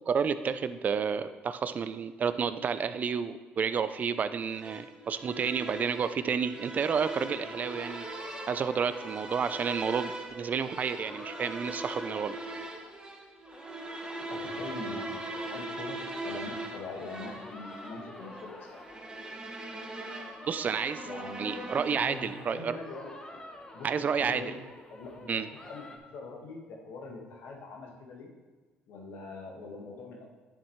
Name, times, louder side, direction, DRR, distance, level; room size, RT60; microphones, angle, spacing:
voice 1, 0.1-8.1 8.5-12.4 20.5-21.1 21.4-22.8 23.8-24.5 25.3-25.5, right 6 dB, 45° right, 12 dB, 0.4 m, -30 dB
sound 1, 4.5-22.5, right 2 dB, 20° right, 1.0 m, -41 dB
sound 2, 6.9-13.2 13.4-26.0, left 1 dB, 20° left, 1.1 m, -48 dB
voice 2, 14.2-18.8 21.0-21.7 22.0-23.4 23.7-25.4 25.7-28.3 28.9-30.3, left 3 dB, 75° left, 0 dB, 1.5 m, -43 dB
9.9 x 7.1 x 3.1 m, 1.3 s
supercardioid pair, 85°, 4 cm